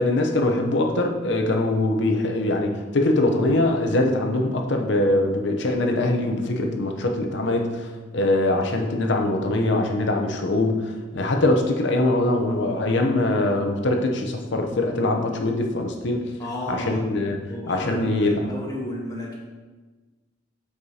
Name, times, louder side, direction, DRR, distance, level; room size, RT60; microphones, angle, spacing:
voice 1, 0.0-7.9 8.1-10.8 11.1-16.2 16.7-17.4 17.7-18.5, left 2 dB, 70° left, 3 dB, 0.7 m, -22 dB
voice 2, 16.4-17.0 17.5-19.3, left 1 dB, 20° left, -3 dB, 1.2 m, -33 dB
7.2 x 4.8 x 2.8 m, 1.3 s
head